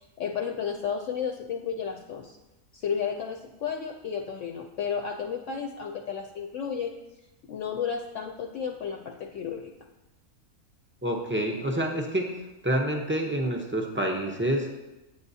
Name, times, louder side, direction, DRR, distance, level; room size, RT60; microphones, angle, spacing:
voice 1, 0.2-2.4 2.7-6.9 7.5-9.7, left 7 dB, 65° left, 2 dB, 0.8 m, -32 dB
voice 2, 11.0-12.3 12.6-14.7, right 1 dB, 20° right, 1 dB, 0.3 m, -27 dB
9.5 x 7.1 x 2.7 m, 1.0 s
omnidirectional pair, 1.5 m